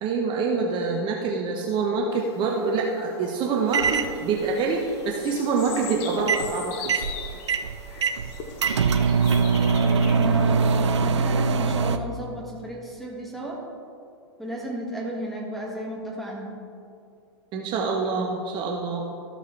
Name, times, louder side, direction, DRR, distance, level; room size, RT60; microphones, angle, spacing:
voice 1, 0.0-7.0 17.5-19.0, right 4 dB, 35° right, 0 dB, 0.9 m, -26 dB
sound 1, 2.1-11.4, left 6 dB, 45° left, 1.1 m, -41 dB
Microwave Popcorn, 3.7-4.2 6.2-6.5 6.8-12.0, right 5 dB, 90° right, 0.5 m, -22 dB
voice 2, 9.0-13.6 14.4-16.5, equal, ahead, -2 dB, 1.8 m, -34 dB
13.5 x 6.4 x 3.3 m, 2.4 s
hypercardioid pair, 120°, 14 cm